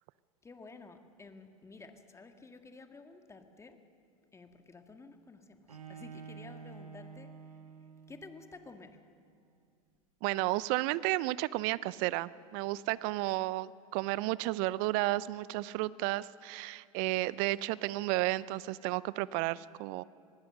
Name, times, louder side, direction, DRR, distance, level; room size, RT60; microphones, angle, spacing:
voice 1, 0.4-3.8 4.3-7.3 8.1-9.0, left 3 dB, 15° left, 7 dB, 1.9 m, -52 dB
Bowed string instrument, 5.7-8.6, right 6 dB, 85° right, 1.3 m, -49 dB
voice 2, 10.2-20.0, right 19 dB, 50° right, 20 dB, 0.6 m, -32 dB
25.0 x 19.0 x 6.6 m, 2.3 s
hypercardioid pair, 90°, 18 cm